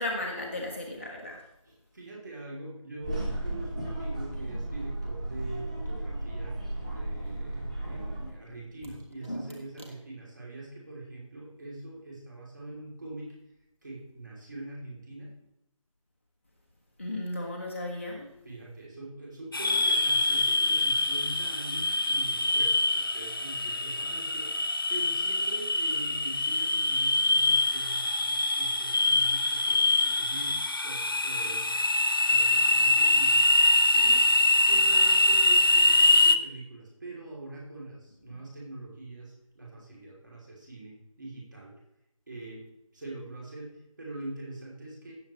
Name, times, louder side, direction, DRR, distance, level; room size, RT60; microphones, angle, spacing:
voice 1, 0.0-1.4 9.2-9.5 17.0-18.3 38.3-38.4, left 1 dB, 20° left, -1 dB, 0.9 m, -35 dB
voice 2, 1.9-13.3 13.8-15.3 18.4-31.8 32.3-33.4 33.9-34.2 34.6-41.7 42.3-42.6 42.9-45.2, right 2 dB, 35° right, -3 dB, 3.1 m, -43 dB
sound 1, 3.0-8.3, right 1 dB, 15° right, 1.1 m, -34 dB
sound 2, 19.5-36.4, left 2 dB, 40° left, 0.5 m, -24 dB
16.0 x 7.1 x 3.1 m, 0.89 s
figure-of-eight pair, 165°, 18 cm